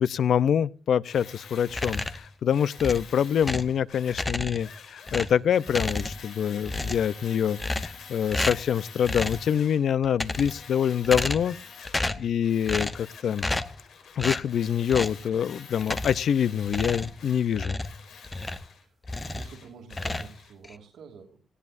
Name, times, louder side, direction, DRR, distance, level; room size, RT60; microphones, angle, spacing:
voice 1, 0.0-11.6 12.2-13.5 14.2-17.8, left 8 dB, 65° left, 0.6 m, -25 dB
Tools, 1.1-9.9 10.2-12.1 12.4-20.5, left 6 dB, 85° left, 4.6 m, -47 dB
sound 1, 1.7-2.3 2.8-3.8 4.1-4.8 5.1-6.4 6.6-7.2 7.6-8.0 8.3-8.7 9.1-9.5 10.0-10.7 11.0-11.6 11.9-12.3 12.7-13.1 13.4-13.8 14.2-14.5 14.9-15.2 15.8-16.3 16.7-18.7 19.0-19.6 19.9-20.8, left 2 dB, 15° left, 0.8 m, -31 dB
voice 2, 18.8-21.4, right 6 dB, 80° right, 2.8 m, -48 dB
18.0 x 16.5 x 2.6 m
wide cardioid pair, 175°, 0 cm